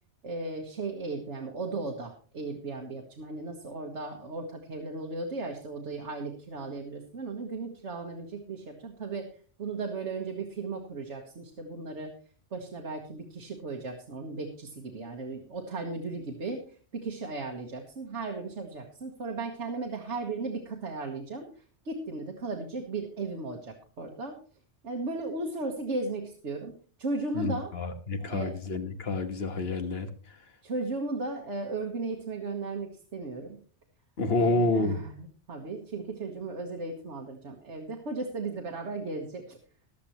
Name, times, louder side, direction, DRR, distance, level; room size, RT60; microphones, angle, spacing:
voice 1, 0.2-9.3 9.6-12.1 12.5-16.6 16.9-24.4 24.8-26.7 27.0-27.7 28.2-28.6 30.6-33.6 34.3-39.6, right 3 dB, 75° right, 1 dB, 1.7 m, -36 dB
voice 2, 27.3-30.1 34.2-35.0, left 2 dB, 60° left, 7 dB, 1.6 m, -28 dB
15.5 x 11.5 x 3.1 m, 0.41 s
omnidirectional pair, 1.2 m